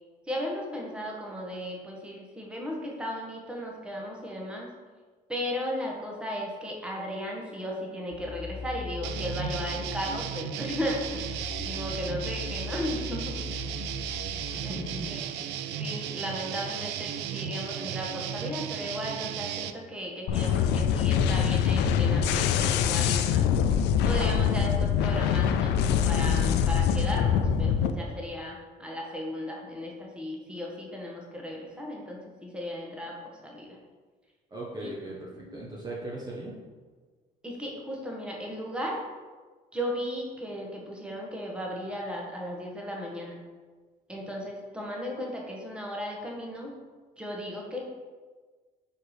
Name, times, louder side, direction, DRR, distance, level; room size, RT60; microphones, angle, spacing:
voice 1, 0.3-4.7 5.3-13.3 14.6-14.7 15.1-15.2 15.8-23.5 24.0-33.7 34.8-34.9 35.4-35.6 37.4-39.0 39.7-43.4 44.1-46.7 47.2-47.8, equal, 5° right, -2 dB, 1.3 m, -35 dB
sound 1, 8.1-15.0, left 4 dB, 40° left, 0.9 m, -40 dB
sound 2, 9.0-19.7, right 9 dB, 90° right, 0.4 m, -35 dB
voice 2, 14.6-15.1 34.5-36.5, right 1 dB, 25° right, -4 dB, 1.0 m, -38 dB
sound 3, 20.3-27.9, left 8 dB, 90° left, 0.4 m, -24 dB
4.7 x 4.5 x 4.8 m, 1.4 s
cardioid pair, 110°, 17 cm